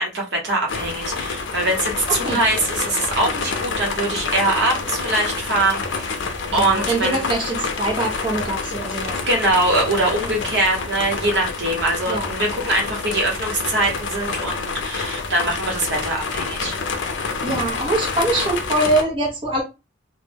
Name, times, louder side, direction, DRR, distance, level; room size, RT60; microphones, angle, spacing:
voice 1, 0.0-6.1 6.5-7.2 9.3-16.7, right 2 dB, 70° right, 0.9 m, -22 dB
sound 1, 0.7-19.0, left 4 dB, 80° left, 0.5 m, -28 dB
voice 2, 6.5-9.2 12.1-12.3 17.4-19.6, right 2 dB, 30° right, 0.6 m, -23 dB
2.1 x 2.1 x 3.2 m
head